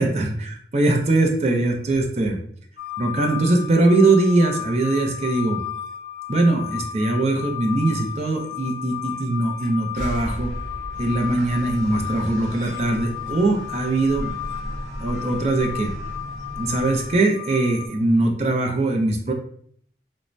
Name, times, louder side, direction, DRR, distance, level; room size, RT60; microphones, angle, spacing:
voice 1, 0.0-2.4 3.0-5.6 6.3-10.5 11.0-14.3 15.0-15.9 16.6-19.3, right 2 dB, 35° right, 1 dB, 0.4 m, -21 dB
sound 1, 2.8-17.9, left 10 dB, 60° left, 0.3 m, -34 dB
sound 2, 9.9-13.4, equal, 85° left, 0.9 m, -35 dB
sound 3, 10.9-17.2, equal, 80° right, 0.9 m, -36 dB
2.5 x 2.1 x 3.0 m, 0.62 s
head